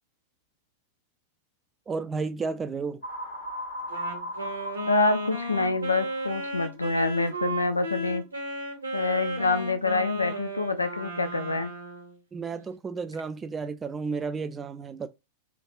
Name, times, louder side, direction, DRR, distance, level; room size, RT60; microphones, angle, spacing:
voice 1, 1.9-3.0 12.3-15.1, right 4 dB, 20° right, 0.3 m, -32 dB
sound 1, 3.0-6.9, left 1 dB, 60° left, 1.2 m, -38 dB
Wind instrument woodwind instrument, 3.9-12.2, right 1 dB, 75° right, 0.9 m, -34 dB
voice 2, 4.9-8.2 8.9-11.7, left 3 dB, 80° left, 0.3 m, -26 dB
3.2 x 2.3 x 2.4 m
figure-of-eight pair, 90°, 0 cm